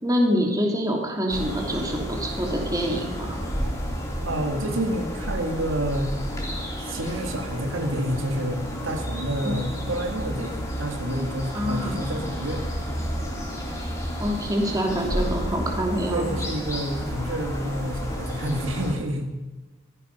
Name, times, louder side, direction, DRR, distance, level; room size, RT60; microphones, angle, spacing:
voice 1, 0.0-3.4 9.4-9.6 11.5-12.0 14.2-16.3, equal, 20° right, 1 dB, 2.8 m, -26 dB
sound 1, 1.3-18.9, equal, 15° left, 3.3 m, -31 dB
voice 2, 4.2-6.1 6.8-12.7 16.1-19.3, right 1 dB, 85° right, 4 dB, 2.0 m, -29 dB
16.5 x 15.0 x 5.4 m, 1.2 s
head